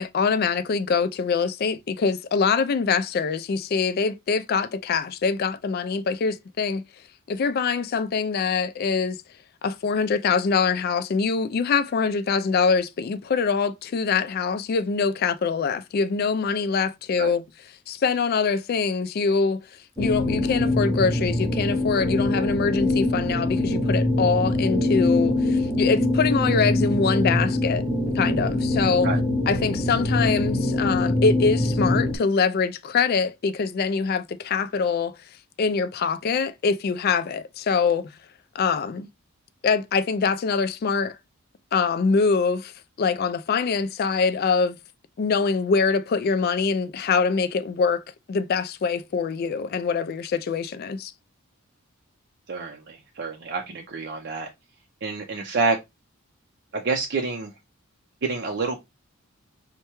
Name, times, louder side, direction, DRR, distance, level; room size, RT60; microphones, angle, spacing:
voice 1, 0.0-6.8 7.3-9.2 9.6-17.4 17.9-27.8 28.1-29.1 29.5-35.2 35.6-38.2 38.5-39.1 39.6-41.2 41.7-42.7 43.0-44.8 45.2-48.0 48.3-51.1, left 5 dB, 45° left, 0.3 m, -24 dB
sound 1, 20.0-32.2, left 2 dB, 15° right, 0.8 m, -23 dB
voice 2, 52.5-54.5 55.0-55.8 56.7-57.5 58.2-58.8, right 4 dB, 50° right, 0.5 m, -27 dB
5.5 x 2.2 x 2.9 m
head